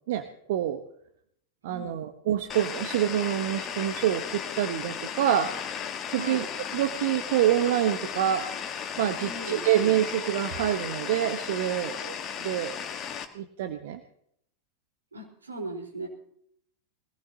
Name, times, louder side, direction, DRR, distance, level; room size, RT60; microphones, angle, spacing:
voice 1, 0.1-0.8 1.6-5.5 6.1-6.5 6.7-8.4 9.0-12.7 13.3-14.0, right 11 dB, 55° right, 9 dB, 1.0 m, -26 dB
voice 2, 1.7-2.0 6.1-6.5 9.1-9.7 15.1-16.1, right 2 dB, 75° right, 1 dB, 4.0 m, -38 dB
sound 1, 2.5-13.2, left 7 dB, 30° left, 1.5 m, -35 dB
22.0 x 18.0 x 2.8 m, 0.69 s
figure-of-eight pair, 90°, 0 cm